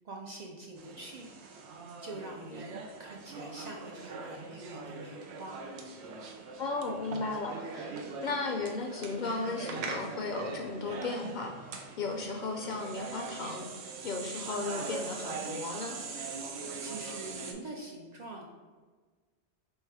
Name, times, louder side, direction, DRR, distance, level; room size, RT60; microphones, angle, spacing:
voice 1, 0.0-1.3 2.0-5.6 16.8-18.5, right 2 dB, 55° right, -1 dB, 0.5 m, -44 dB
sound 1, 0.8-17.5, right 4 dB, 90° right, 0.8 m, -42 dB
voice 2, 6.6-7.9 8.2-11.5 12.0-13.6 14.0-16.0, left 3 dB, 55° left, 2 dB, 0.6 m, -35 dB
3.2 x 3.2 x 4.7 m, 1.4 s
omnidirectional pair, 1.1 m